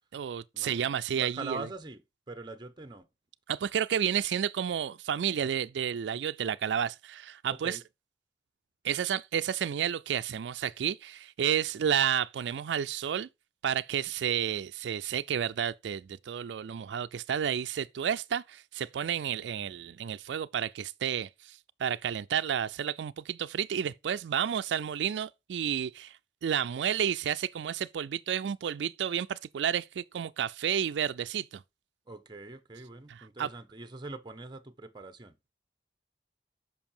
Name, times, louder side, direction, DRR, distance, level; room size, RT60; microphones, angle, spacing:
voice 1, 0.1-1.6 3.5-7.8 8.8-13.3 13.6-26.1 26.4-31.6 33.1-33.5, right 8 dB, 85° right, 0.4 m, -31 dB
voice 2, 1.1-2.0 2.3-3.1 7.5-7.8 32.1-35.5, right 3 dB, 25° right, 0.8 m, -43 dB
7.2 x 5.5 x 4.4 m
head